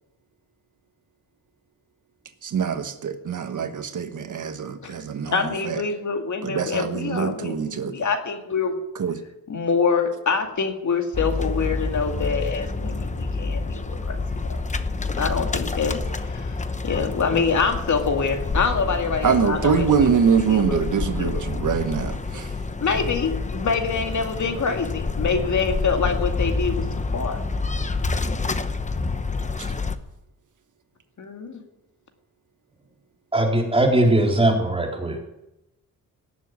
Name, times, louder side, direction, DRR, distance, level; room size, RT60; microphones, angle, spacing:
voice 1, 2.4-5.8 6.4-8.0 8.9-9.2 19.2-22.6 29.6-29.7, right 6 dB, 60° right, 7 dB, 1.3 m, -24 dB
voice 2, 5.3-8.8 9.5-14.2 15.2-16.6 16.8-20.1 20.5-20.8 21.2-21.4 22.8-26.8 27.1-27.4 31.2-31.6, left 5 dB, 60° left, 4 dB, 2.2 m, -25 dB
sound 1, 11.1-30.0, left 3 dB, 20° left, 0.9 m, -28 dB
voice 3, 33.3-35.2, right 1 dB, 15° right, -1 dB, 4.1 m, -20 dB
18.0 x 7.5 x 9.4 m, 0.90 s
wide cardioid pair, 115°, 34 cm